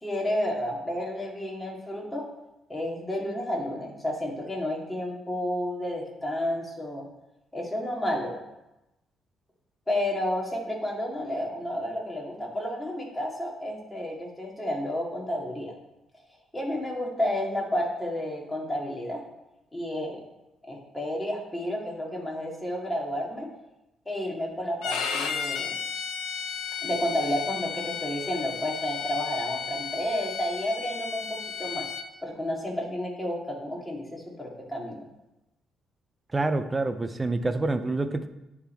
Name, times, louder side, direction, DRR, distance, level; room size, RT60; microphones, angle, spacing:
voice 1, 0.0-2.3 2.7-7.0 7.5-8.4 9.9-15.7 16.5-19.2 19.7-20.2 20.7-23.5 24.1-25.7 26.8-31.9 32.2-35.0, left 1 dB, 10° left, -2 dB, 2.1 m, -31 dB
Bowed string instrument, 24.8-32.1, left 7 dB, 90° left, 0.7 m, -34 dB
voice 2, 36.3-38.3, right 2 dB, 20° right, 9 dB, 0.5 m, -27 dB
10.0 x 3.6 x 4.4 m, 0.93 s
cardioid pair, 90°, 0 cm